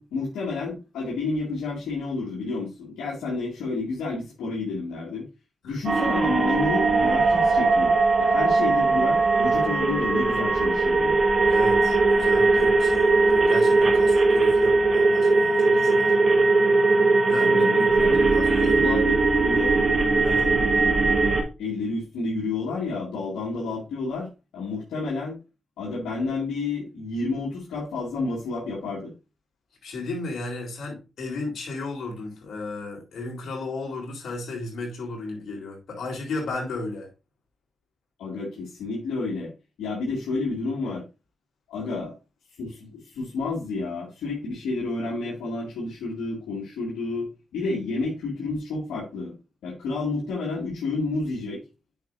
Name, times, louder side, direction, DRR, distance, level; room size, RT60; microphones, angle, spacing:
voice 1, 0.0-5.3 5.6-11.2 17.4-18.3 18.6-19.8 21.6-24.3 24.5-25.4 25.8-29.1 38.2-39.5 39.8-41.0 41.7-42.1 42.6-47.3 47.5-49.3 49.6-51.6, left 3 dB, 90° left, 2.4 m, -30 dB
sound 1, 5.9-21.4, right 3 dB, 60° right, 2.0 m, -20 dB
voice 2, 11.5-16.1 17.3-19.0 20.2-20.5 29.8-37.1, left 3 dB, 70° left, 3.9 m, -34 dB
8.9 x 6.1 x 2.7 m
supercardioid pair, 50°, 0 cm